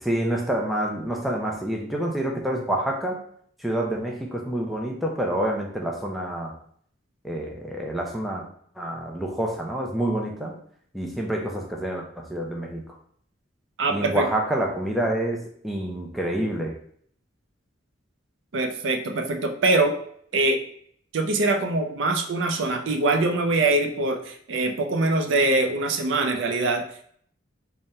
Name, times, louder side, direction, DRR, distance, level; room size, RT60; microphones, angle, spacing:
voice 1, 0.0-3.2 3.6-6.5 7.2-8.4 8.8-10.5 10.9-12.8 13.9-15.4 15.6-16.7, right 1 dB, ahead, -1 dB, 0.5 m, -27 dB
voice 2, 13.8-14.3 18.5-19.9 20.3-20.6 21.1-26.8, right 2 dB, 70° right, 5 dB, 0.5 m, -23 dB
3.7 x 2.1 x 4.1 m, 0.62 s
head